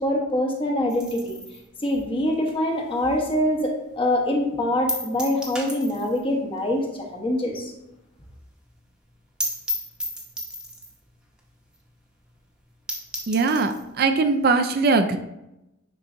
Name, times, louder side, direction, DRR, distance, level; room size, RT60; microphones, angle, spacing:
voice 1, 0.0-1.4 1.8-7.7, left 1 dB, 25° left, 0 dB, 0.9 m, -24 dB
sound 1, 0.9-3.5 3.8-3.9 4.3-4.4 4.9-6.3 6.6-6.7 7.0-7.1 7.4-7.5 7.8-7.9 8.2-8.3 8.6-8.7 9.0-9.1 9.4-11.0 11.7-11.8 12.2-12.3 12.6-12.7 12.9-13.9, equal, 5° right, 0.9 m, -33 dB
voice 2, 13.3-15.2, right 4 dB, 50° right, 8 dB, 0.4 m, -21 dB
9.9 x 4.0 x 2.6 m, 0.90 s
head